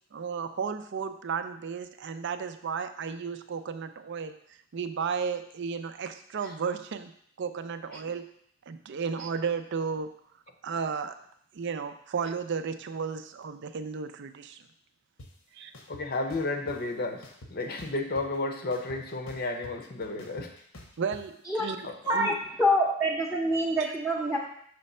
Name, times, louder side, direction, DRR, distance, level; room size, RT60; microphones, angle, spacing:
voice 1, 0.1-4.4 4.7-7.1 7.4-8.3 8.7-10.1 10.6-11.2 11.5-14.6 15.5-15.7 21.0-22.3 23.8-23.9, right 6 dB, 60° right, 10 dB, 0.4 m, -33 dB
sound 1, 15.2-15.3 15.7-16.8 17.2-18.4 18.7-21.2, left 1 dB, 75° left, 1.0 m, -47 dB
voice 2, 15.9-20.5 21.8-22.0, left 2 dB, 45° left, 4 dB, 0.7 m, -32 dB
voice 3, 22.0-24.4, equal, 5° right, -3 dB, 0.7 m, -26 dB
6.0 x 3.2 x 5.4 m, 0.66 s
head